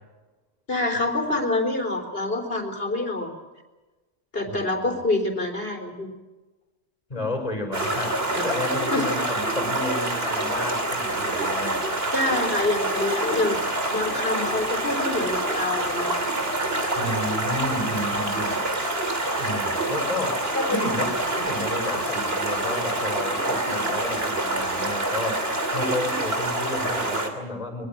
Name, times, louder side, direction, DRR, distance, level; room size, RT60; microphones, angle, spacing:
voice 1, 0.7-3.3 4.3-6.1 8.9-9.1 12.1-13.6 13.9-16.1 20.5-20.8 23.5-23.9, left 2 dB, 50° left, 5 dB, 4.0 m, -26 dB
voice 2, 4.4-5.0 7.1-11.8 16.9-18.6 19.4-27.9, left 2 dB, 30° left, 5 dB, 5.2 m, -32 dB
Stream, 7.7-27.3, right 2 dB, 55° right, 3.2 m, -26 dB
23.0 x 22.5 x 7.4 m, 1.2 s
omnidirectional pair, 1.2 m